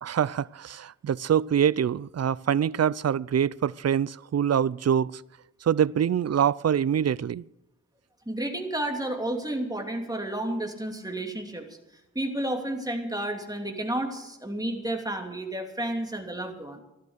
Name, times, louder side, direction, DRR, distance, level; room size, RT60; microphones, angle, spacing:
voice 1, 0.0-5.2 5.6-7.4, right 8 dB, 60° right, 0.5 m, -25 dB
voice 2, 8.3-11.6 12.1-16.8, right 1 dB, 10° right, 2.8 m, -31 dB
16.5 x 12.0 x 6.5 m
wide cardioid pair, 80°, 30 cm